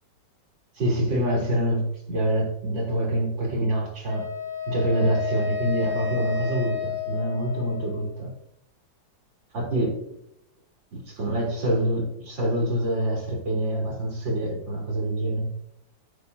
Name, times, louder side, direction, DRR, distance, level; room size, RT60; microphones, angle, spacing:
voice 1, 0.7-4.3 4.7-8.3 9.5-10.0 10.9-15.5, right 1 dB, 80° right, -2 dB, 4.2 m, -26 dB
Wind instrument woodwind instrument, 4.1-8.2, left 8 dB, 65° left, 2.7 m, -31 dB
16.5 x 8.0 x 2.7 m, 0.75 s
omnidirectional pair, 2.0 m